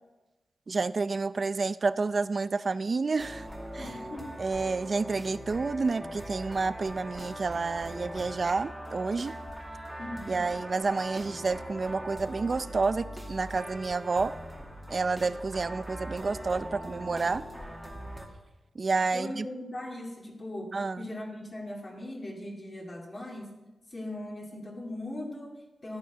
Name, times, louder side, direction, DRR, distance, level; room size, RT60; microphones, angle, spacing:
voice 1, 0.7-3.5 3.8-3.9 4.4-9.3 10.3-14.3 14.9-17.4 18.8-19.5 20.7-21.1, right 4 dB, 45° right, 15 dB, 0.5 m, -29 dB
sound 1, 3.2-18.3, equal, 5° right, 2.1 m, -41 dB
voice 2, 3.8-4.3 10.0-10.5 19.1-23.5 23.9-26.0, left 1 dB, 35° left, -1 dB, 2.4 m, -39 dB
13.5 x 9.3 x 6.1 m, 1.1 s
wide cardioid pair, 90°, 0 cm